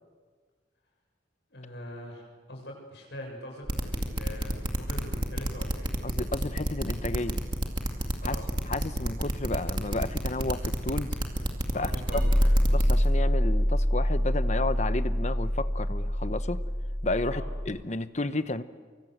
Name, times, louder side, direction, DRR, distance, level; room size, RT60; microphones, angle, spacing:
voice 1, 1.5-5.9 8.2-8.5 11.7-12.6 17.3-17.5, left 1 dB, 65° left, 0 dB, 7.1 m, -43 dB
sound 1, 3.7-13.1, right 1 dB, 25° right, 2.3 m, -29 dB
voice 2, 6.0-7.4 8.2-8.4 8.7-11.2 11.7-12.2 12.7-16.6 17.0-18.6, left 2 dB, 40° left, 13 dB, 0.9 m, -32 dB
sound 2, 12.1-17.7, equal, 5° right, 6.0 m, -25 dB
25.0 x 24.0 x 8.0 m, 1.5 s
head